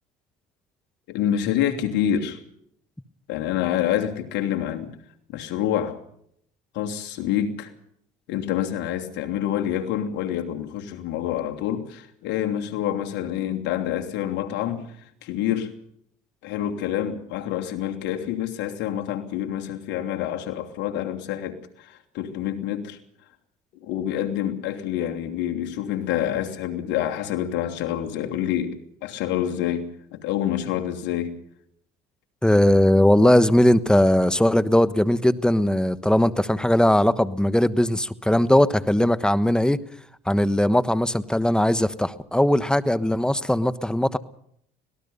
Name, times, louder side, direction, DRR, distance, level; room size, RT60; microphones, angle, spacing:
voice 1, 1.1-2.4 3.3-4.9 5.3-6.0 6.7-7.7 8.3-14.9 15.2-15.7 16.4-23.0 23.8-31.3, left 10 dB, 75° left, 3.0 m, -27 dB
voice 2, 32.4-39.8 40.3-44.2, left 1 dB, 5° left, 1.3 m, -19 dB
25.5 x 18.5 x 5.5 m
supercardioid pair, 85°, 19 cm